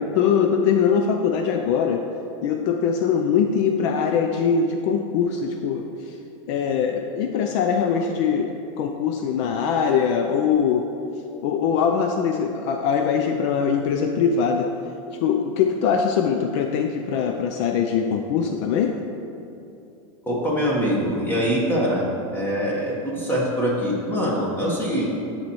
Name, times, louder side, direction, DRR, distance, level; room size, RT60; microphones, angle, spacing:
voice 1, 0.0-2.1 2.4-6.2 6.5-10.9 11.4-14.7 15.2-18.9, left 7 dB, 60° left, 4 dB, 0.4 m, -22 dB
voice 2, 20.3-22.0 22.3-25.1, equal, 10° left, -5 dB, 1.2 m, -23 dB
10.5 x 4.2 x 3.0 m, 2.7 s
supercardioid pair, 135°, 17 cm